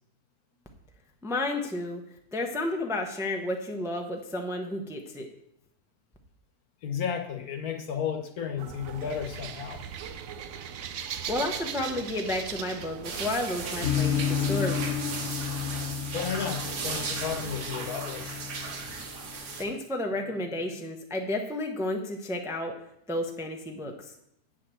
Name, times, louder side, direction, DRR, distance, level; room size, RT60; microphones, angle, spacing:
voice 1, 1.2-2.0 2.3-5.3 11.3-14.8 19.6-22.7 23.1-23.9, left 1 dB, 5° right, 3 dB, 0.7 m, -31 dB
voice 2, 6.8-9.8 16.1-18.5, left 7 dB, 65° left, 6 dB, 1.5 m, -33 dB
sound 1, 8.6-14.2, right 8 dB, 65° right, 1.0 m, -39 dB
sound 2, 13.0-19.6, right 4 dB, 85° right, 1.8 m, -36 dB
Horror Ambiance, 13.8-19.4, left 8 dB, 50° left, 1.0 m, -32 dB
8.2 x 5.0 x 7.5 m, 0.76 s
omnidirectional pair, 1.7 m